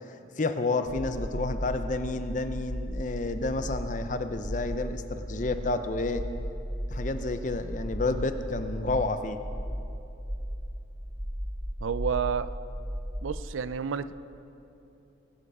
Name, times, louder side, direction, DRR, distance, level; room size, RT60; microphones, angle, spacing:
voice 1, 0.4-6.2 6.9-9.4, left 3 dB, 40° left, 9 dB, 0.6 m, -30 dB
sound 1, 0.9-13.4, equal, 5° right, 0.4 m, -36 dB
voice 2, 11.8-12.5 13.2-14.1, right 6 dB, 90° right, 14 dB, 0.4 m, -30 dB
19.5 x 7.8 x 4.9 m, 2.8 s
head